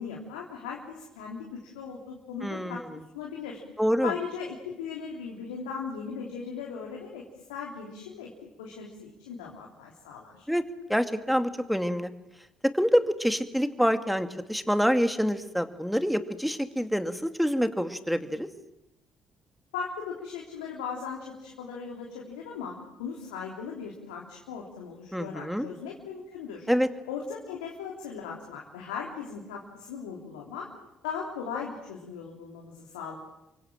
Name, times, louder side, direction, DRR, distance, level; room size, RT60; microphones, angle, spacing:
voice 1, 0.0-2.8 3.1-3.6 4.0-8.3 8.6-10.5 19.7-26.7 27.1-30.7 31.0-33.2, left 6 dB, 85° left, -1 dB, 3.4 m, -38 dB
voice 2, 2.4-2.8 3.8-4.1 10.5-10.6 10.9-12.1 12.7-18.5 25.1-25.7 26.7-26.9, equal, ahead, 9 dB, 2.5 m, -26 dB
30.0 x 24.0 x 7.7 m, 0.90 s
hypercardioid pair, 45°, 4 cm